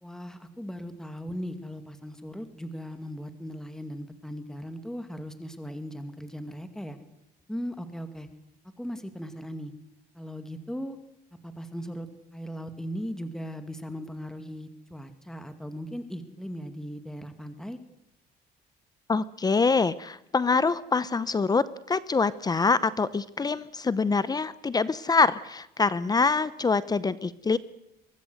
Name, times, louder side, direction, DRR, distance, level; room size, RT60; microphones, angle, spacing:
voice 1, 0.0-7.0 7.5-8.3 8.8-9.7 10.1-11.0 11.4-17.8, equal, 5° left, 8 dB, 2.3 m, -38 dB
voice 2, 19.1-27.6, left 4 dB, 25° left, 17 dB, 0.9 m, -25 dB
23.5 x 18.0 x 8.0 m, 0.86 s
cardioid pair, 110°, 17 cm